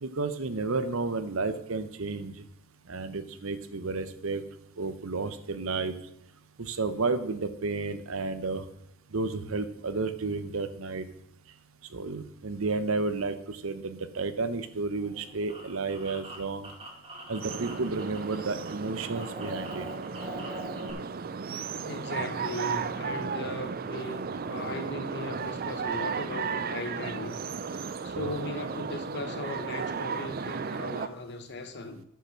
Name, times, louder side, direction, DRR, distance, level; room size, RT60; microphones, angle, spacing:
voice 1, 0.0-2.4 2.9-4.4 4.8-5.9 6.6-8.6 9.1-11.1 11.9-16.7 17.3-19.9 28.0-28.3, right 3 dB, 65° right, 0.8 m, -32 dB
sound 1, 15.0-18.3 18.6-20.9, right 1 dB, 25° right, 2.1 m, -42 dB
sound 2, 17.4-31.1, right 5 dB, 40° right, 0.4 m, -35 dB
voice 2, 21.8-24.2 24.5-27.3 28.0-32.0, left 2 dB, 50° left, 1.0 m, -37 dB
10.5 x 5.8 x 6.3 m
head